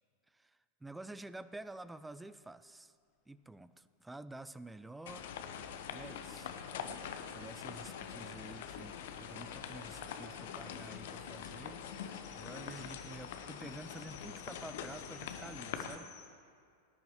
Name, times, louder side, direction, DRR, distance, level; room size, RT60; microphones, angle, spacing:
voice 1, 0.3-2.9 3.3-5.4 5.9-6.5 7.3-16.1, right 2 dB, 5° right, 15 dB, 0.3 m, -50 dB
sound 1, 5.1-16.0, left 8 dB, 55° left, 0.7 m, -44 dB
sound 2, 11.2-16.3, left 7 dB, 40° left, 1.1 m, -59 dB
19.0 x 10.5 x 3.1 m, 2.3 s
figure-of-eight pair, 90°, 0 cm